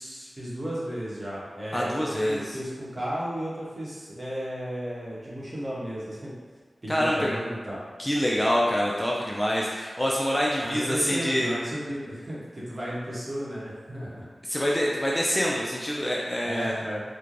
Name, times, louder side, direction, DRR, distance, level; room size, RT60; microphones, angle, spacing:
voice 1, 0.0-6.3 6.8-7.8 10.6-14.2 16.4-17.0, equal, 35° right, -7 dB, 0.9 m, -34 dB
voice 2, 1.7-2.6 6.9-7.4 8.0-11.5 14.4-16.8, equal, 15° left, -4 dB, 0.3 m, -26 dB
3.1 x 2.1 x 2.5 m, 1.5 s
wide cardioid pair, 65°, 0 cm